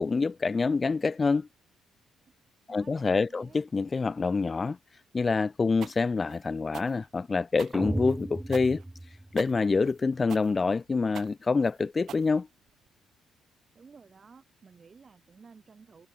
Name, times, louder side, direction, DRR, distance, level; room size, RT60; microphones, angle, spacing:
voice 1, 0.0-1.5 2.7-4.8 5.1-8.8 9.3-12.5, left 4 dB, 30° left, 0.4 m, -26 dB
voice 2, 2.7-3.6 13.7-16.1, right 5 dB, 35° right, 5.4 m, -54 dB
sound 1, 5.8-12.9, right 10 dB, 65° right, 2.5 m, -46 dB
sound 2, 7.7-9.9, right 1 dB, 10° right, 1.0 m, -35 dB
cardioid pair, 100°, 0 cm